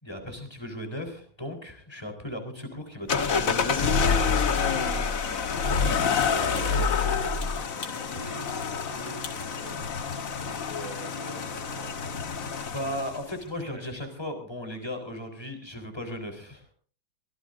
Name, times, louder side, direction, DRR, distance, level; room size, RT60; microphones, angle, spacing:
voice 1, 0.0-5.8 6.2-6.9 12.7-16.7, left 1 dB, 10° left, 5 dB, 3.9 m, -37 dB
sound 1, 3.1-13.3, left 5 dB, 45° left, 1.5 m, -27 dB
sound 2, 4.4-5.1 5.4-10.1 10.3-10.6, left 4 dB, 70° left, 3.5 m, -45 dB
voice 2, 6.3-7.2 7.7-12.5 12.9-13.0 13.7-13.8, equal, 10° right, 4 dB, 5.0 m, -42 dB
23.5 x 18.0 x 2.6 m, 0.43 s
omnidirectional pair, 2.2 m